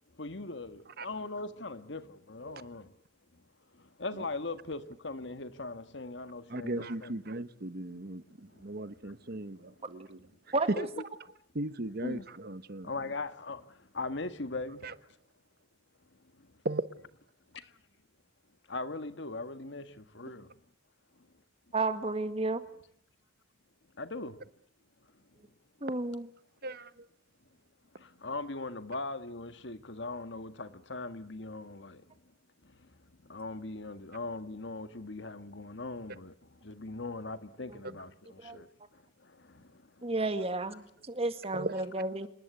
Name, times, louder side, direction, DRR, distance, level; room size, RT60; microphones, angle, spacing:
voice 1, 0.2-2.9 3.3-3.4 3.7-7.2 7.9-8.0 8.5-9.9 10.7-11.0 12.0-12.3 12.8-14.9 16.2-16.5 17.5-17.7 18.7-20.5 21.1-21.3 24.0-24.5 25.1-25.2 28.0-32.1 32.6-40.1 40.6-40.8, left 3 dB, 70° left, 1.7 m, -41 dB
voice 2, 6.5-10.2 11.5-12.9 14.8-14.9 16.6-16.8 26.6-26.9 41.5-41.8, right 2 dB, 55° right, 1.1 m, -37 dB
voice 3, 10.5-10.9 21.7-22.6 25.8-26.3 38.4-38.6 40.0-42.3, right 2 dB, 35° right, 2.1 m, -32 dB
27.0 x 20.5 x 8.2 m
head